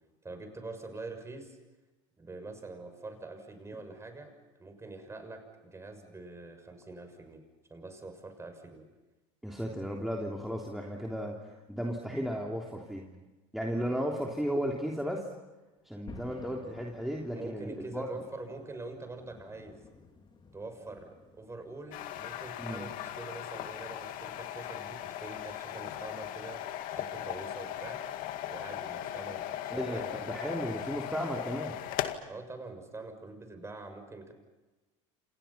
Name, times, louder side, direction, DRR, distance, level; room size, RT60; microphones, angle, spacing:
voice 1, 0.2-1.6 2.2-4.3 4.6-7.4 7.7-8.8 13.7-14.0 17.3-19.8 20.5-26.6 26.9-28.0 28.5-30.3 32.3-34.3, right 2 dB, 15° right, 7 dB, 6.5 m, -45 dB
voice 2, 9.4-13.1 13.5-15.2 15.8-18.1 22.6-22.9 29.7-31.8, equal, ahead, -1 dB, 3.4 m, -35 dB
sound 1, 16.1-26.3, left 3 dB, 30° left, 4.7 m, -55 dB
sound 2, 21.9-32.2, left 12 dB, 60° left, 2.2 m, -38 dB
29.5 x 28.0 x 5.8 m, 1.1 s
supercardioid pair, 105°, 16 cm